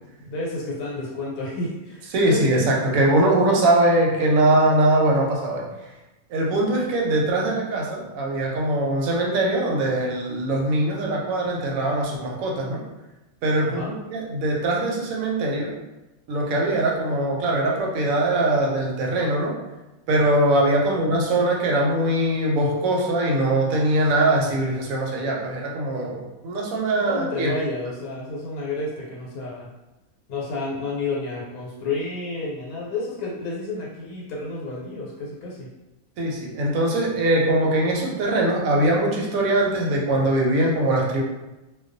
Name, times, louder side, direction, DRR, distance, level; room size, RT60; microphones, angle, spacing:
voice 1, 0.2-2.6 13.6-13.9 20.5-21.0 26.9-29.7 30.3-35.7, left 3 dB, 85° left, -5 dB, 1.1 m, -31 dB
voice 2, 2.1-5.6 6.3-12.8 13.4-13.8 14.1-15.7 16.3-19.5 20.1-27.5 36.2-41.2, right 1 dB, 75° right, -1 dB, 1.0 m, -22 dB
2.3 x 2.2 x 2.5 m, 1.0 s
omnidirectional pair, 1.5 m